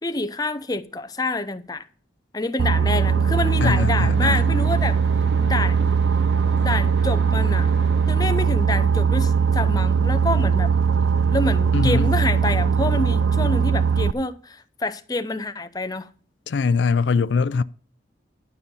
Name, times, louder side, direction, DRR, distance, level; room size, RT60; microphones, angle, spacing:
voice 1, 0.0-1.8 2.3-5.0 5.4-5.8 6.6-7.7 8.1-10.7 11.3-16.1, left 2 dB, 20° left, 0.7 m, -27 dB
Boat Water vehicle, 2.6-14.1, right 6 dB, 90° right, 0.4 m, -20 dB
sound 1, 3.3-8.7, right 1 dB, 70° right, 2.6 m, -40 dB
voice 2, 3.6-4.4 11.7-12.1 16.5-17.6, left 5 dB, 70° left, 0.4 m, -22 dB
12.0 x 5.4 x 6.9 m
head